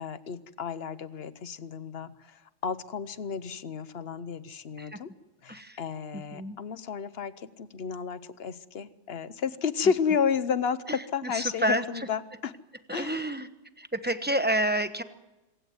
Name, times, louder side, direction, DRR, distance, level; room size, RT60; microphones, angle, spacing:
voice 1, 0.0-2.1 2.6-5.1 5.4-12.5 12.9-13.2, left 6 dB, 45° left, 14 dB, 1.0 m, -32 dB
voice 2, 5.5-5.8 6.1-6.6 10.9-12.1 12.9-13.5 13.8-15.0, right 1 dB, 10° right, 10 dB, 0.8 m, -29 dB
26.0 x 16.0 x 9.4 m, 1.1 s
omnidirectional pair, 1.7 m